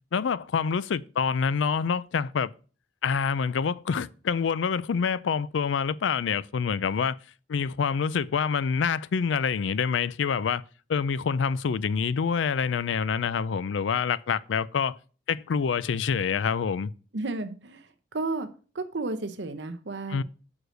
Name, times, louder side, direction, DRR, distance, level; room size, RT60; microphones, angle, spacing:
voice 1, 0.1-2.5 3.0-7.2 7.5-10.6 10.9-15.0 15.3-16.9 20.1-20.2, left 6 dB, 85° left, 0.4 m, -26 dB
voice 2, 17.1-18.5 18.7-20.2, right 3 dB, 70° right, 0.9 m, -33 dB
6.4 x 4.9 x 6.3 m
head